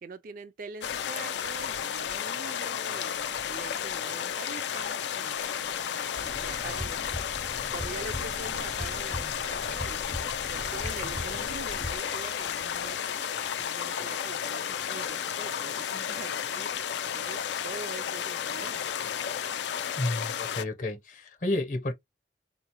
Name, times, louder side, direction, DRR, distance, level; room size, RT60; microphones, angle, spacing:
voice 1, 0.0-7.0 7.7-13.0 13.6-16.7 17.1-18.8, right 4 dB, 50° right, 0.3 m, -44 dB
sound 1, 0.8-20.6, left 8 dB, 85° left, 0.4 m, -33 dB
sound 2, 6.2-12.0, left 1 dB, 10° left, 0.5 m, -40 dB
sound 3, 10.2-15.2, right 4 dB, 90° right, 0.6 m, -52 dB
voice 2, 20.0-21.9, left 2 dB, 45° left, 0.7 m, -31 dB
3.7 x 2.0 x 2.8 m
head